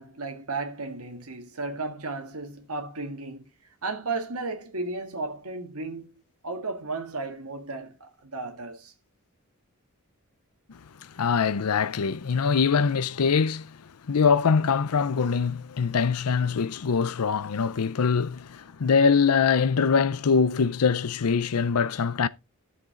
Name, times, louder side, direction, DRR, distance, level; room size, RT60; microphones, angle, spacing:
voice 1, 0.0-3.4 3.8-8.9, right 3 dB, 80° right, 1.8 m, -34 dB
voice 2, 11.2-13.8 14.1-22.3, left 5 dB, 85° left, 0.6 m, -23 dB
13.0 x 6.7 x 3.8 m
head